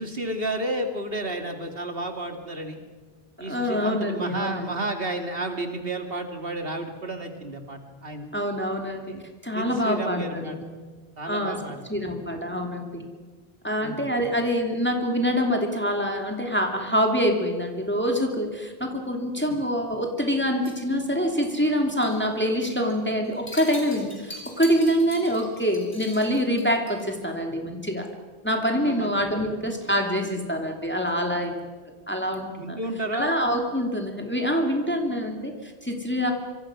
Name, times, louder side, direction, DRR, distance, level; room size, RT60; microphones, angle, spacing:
voice 1, 0.0-2.8 3.4-8.3 9.1-9.3 9.5-10.6 11.2-11.8 13.8-14.0 19.5-19.6 28.8-29.4 32.6-33.3, right 1 dB, 65° right, 5 dB, 2.9 m, -32 dB
voice 2, 3.5-4.7 8.3-9.1 9.4-10.6 11.3-11.6 11.9-13.0 13.6-28.1 28.4-31.5 32.1-32.8 33.1-36.3, equal, 10° left, 2 dB, 2.8 m, -25 dB
sound 1, 20.6-21.7 22.0-22.3 22.6-22.9 23.2-27.2, left 1 dB, 55° left, 4.9 m, -42 dB
26.0 x 25.0 x 6.2 m, 1.4 s
omnidirectional pair, 1.0 m